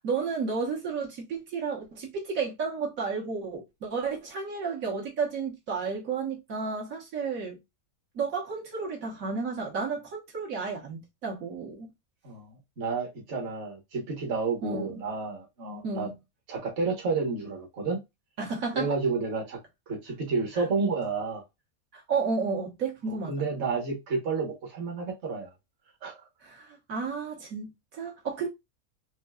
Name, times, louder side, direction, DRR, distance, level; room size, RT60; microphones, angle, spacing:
voice 1, 0.0-7.6 8.1-11.9 14.6-15.0 15.8-16.2 18.4-18.9 20.5-20.7 21.9-23.5 26.4-28.5, right 5 dB, 70° right, 1.7 m, -32 dB
voice 2, 12.2-16.1 16.5-18.0 18.7-19.6 19.9-21.4 23.1-25.5 26.0-26.2, right 4 dB, 50° right, 1.4 m, -30 dB
4.5 x 2.7 x 2.3 m
omnidirectional pair, 1.5 m